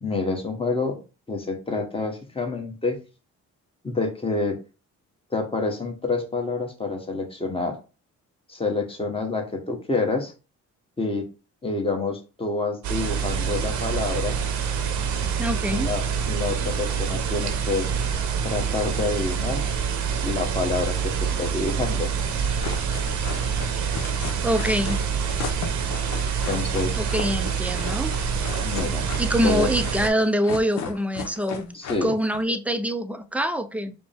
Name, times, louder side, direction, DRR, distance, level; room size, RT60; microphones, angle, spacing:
voice 1, 0.0-1.0 1.3-3.0 3.8-4.6 5.3-7.8 8.5-10.3 11.0-11.3 11.6-14.4 15.7-17.9 18.4-19.6 20.2-22.1 26.5-27.0 28.6-29.7 31.7-32.1, left 3 dB, 20° left, 2 dB, 1.2 m, -28 dB
sound 1, 12.8-30.1, right 6 dB, 75° right, 0.9 m, -26 dB
voice 2, 15.4-15.9 24.4-25.0 27.0-28.1 29.2-33.9, equal, 5° right, 9 dB, 0.4 m, -25 dB
sound 2, 22.4-32.4, left 6 dB, 65° left, 0.8 m, -36 dB
5.0 x 2.2 x 3.4 m, 0.32 s
cardioid pair, 90°, 30 cm